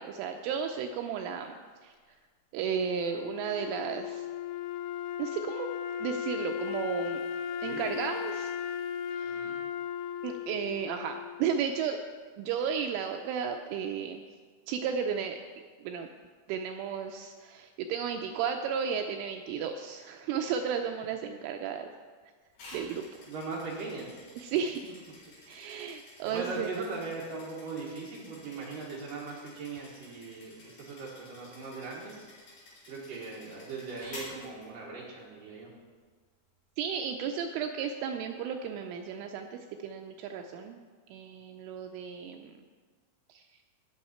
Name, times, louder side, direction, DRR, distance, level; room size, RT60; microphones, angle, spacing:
voice 1, 0.0-1.5 1.8-1.9 2.5-4.3 5.2-5.7 6.0-7.2 7.6-8.5 9.1-9.6 10.2-12.0 12.4-14.2 14.7-15.4 15.8-16.1 16.5-21.9 22.7-23.0 24.4-24.9 25.5-26.7 36.8-40.8 41.1-42.7 43.3-43.4, right 7 dB, 85° right, 4 dB, 2.8 m, -34 dB
Wind instrument woodwind instrument, 2.8-11.9, left 8 dB, 85° left, 3.2 m, -36 dB
voice 2, 7.6-8.0 9.2-9.7 23.3-24.1 26.2-32.2 32.9-35.7, right 3 dB, 60° right, -4 dB, 2.4 m, -39 dB
sound 1, 22.5-35.2, left 2 dB, 50° left, 5.4 m, -52 dB
18.0 x 6.5 x 4.3 m, 1.5 s
omnidirectional pair, 5.9 m